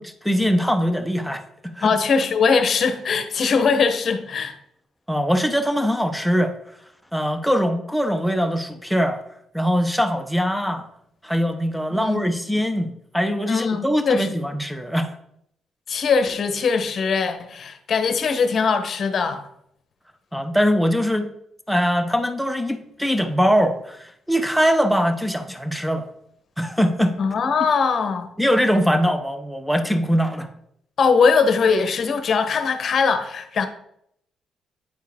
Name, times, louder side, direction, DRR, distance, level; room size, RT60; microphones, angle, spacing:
voice 1, 0.2-1.9 5.1-6.6 7.1-9.2 9.5-10.9 11.2-15.2 20.3-21.3 21.7-26.1 26.6-27.2 28.4-30.5, equal, ahead, 0.8 m, -22 dB
voice 2, 1.8-4.6 11.9-12.3 13.5-14.3 15.9-19.4 27.2-28.3 31.0-33.7, left 5 dB, 50° left, 0.9 m, -21 dB
9.2 x 4.5 x 3.5 m
cardioid pair, 90°, 0 cm